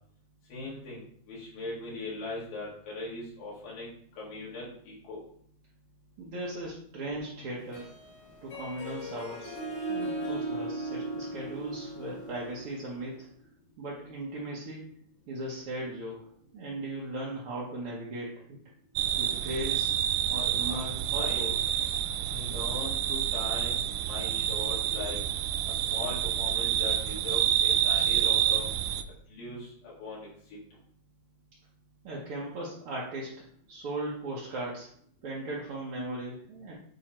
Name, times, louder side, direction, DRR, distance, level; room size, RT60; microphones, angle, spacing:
voice 1, 0.5-1.0 1.3-3.9 4.2-5.2 20.7-20.8 21.2-21.5 22.3-25.2 25.7-28.7 29.3-29.7 30.0-30.6, left 2 dB, 70° left, -6 dB, 3.7 m, -39 dB
voice 2, 6.2-7.9 8.4-9.6 9.9-13.3 13.8-14.9 15.3-16.2 16.5-18.6 19.2-19.9 20.3-21.5 32.0-33.3 33.7-34.9 35.2-36.7, right 1 dB, 65° right, -5 dB, 1.4 m, -37 dB
Harp, 7.6-13.1, right 2 dB, 55° left, 0.9 m, -37 dB
sound 1, 19.0-29.0, right 10 dB, 85° right, 1.8 m, -28 dB
9.2 x 3.2 x 4.4 m, 0.62 s
omnidirectional pair, 4.1 m